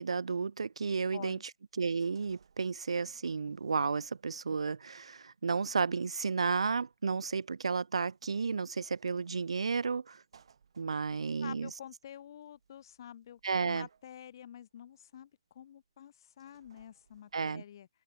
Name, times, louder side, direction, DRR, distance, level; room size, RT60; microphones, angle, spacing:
voice 1, 0.0-1.4 1.8-10.2 10.8-11.7 13.4-13.9 17.3-17.6, right 5 dB, 85° right, 0.4 m, -32 dB
sound 1, 0.6-17.5, right 6 dB, 65° right, 5.1 m, -70 dB
voice 2, 1.1-1.4 11.4-17.9, left 10 dB, 45° left, 0.9 m, -49 dB
hypercardioid pair, 155°, 3 cm